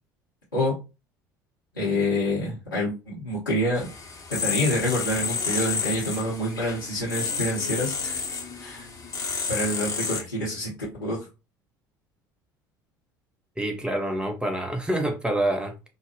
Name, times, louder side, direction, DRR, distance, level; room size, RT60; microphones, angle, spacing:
voice 1, 1.7-3.9 4.3-8.2 8.6-8.9 9.5-11.3, left 1 dB, 85° left, 0.9 m, -27 dB
sound 1, 3.7-10.2, left 5 dB, 30° left, 0.8 m, -30 dB
voice 2, 13.6-15.9, right 1 dB, 10° right, 0.6 m, -27 dB
3.7 x 2.1 x 2.9 m
figure-of-eight pair, 65°, 11 cm